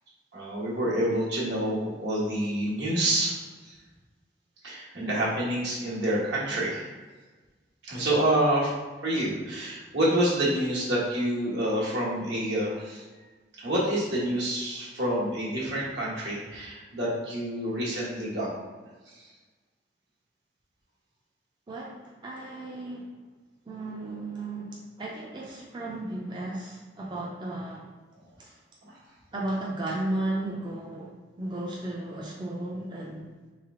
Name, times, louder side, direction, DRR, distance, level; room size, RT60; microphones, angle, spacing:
voice 1, 0.3-3.3 3.6-3.7 4.6-6.8 7.8-8.7 9.0-13.0 13.6-18.5 19.1-19.2 25.8-25.9 28.9-29.0, right 1 dB, 75° right, -6 dB, 1.4 m, -27 dB
voice 2, 21.7-23.1 23.7-27.9 28.4-28.6 29.3-31.1 31.4-33.3, right 1 dB, 25° right, -4 dB, 0.5 m, -34 dB
3.3 x 3.2 x 3.6 m, 1.3 s
head